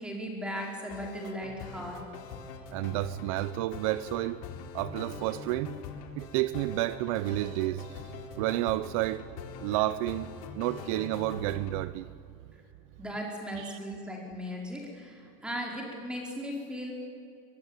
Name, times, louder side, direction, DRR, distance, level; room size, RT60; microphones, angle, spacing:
voice 1, 0.0-2.0 13.0-16.9, equal, 5° right, 4.7 m, -37 dB
sound 1, 0.6-11.8, left 5 dB, 75° left, 3.8 m, -43 dB
voice 2, 2.7-4.4 4.7-5.8 6.2-9.3 9.6-12.1 13.6-13.8, right 16 dB, 65° right, 0.8 m, -31 dB
23.0 x 23.0 x 9.0 m
cardioid pair, 170°, 19 cm